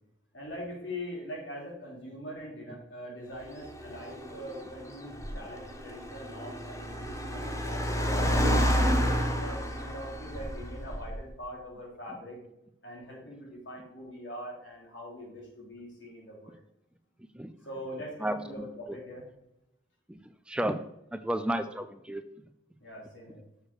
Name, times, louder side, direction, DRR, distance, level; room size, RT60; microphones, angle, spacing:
voice 1, 0.3-7.9 8.3-12.4 12.8-16.6 17.7-19.3 22.8-23.4, equal, 75° left, -3 dB, 3.5 m, -42 dB
Car, 3.4-11.3, equal, 15° left, 0.9 m, -30 dB
voice 2, 18.2-18.7 20.1-20.2 20.5-20.8 21.1-22.2, right 1 dB, 5° right, 10 dB, 0.3 m, -32 dB
6.8 x 6.4 x 4.8 m, 0.85 s
head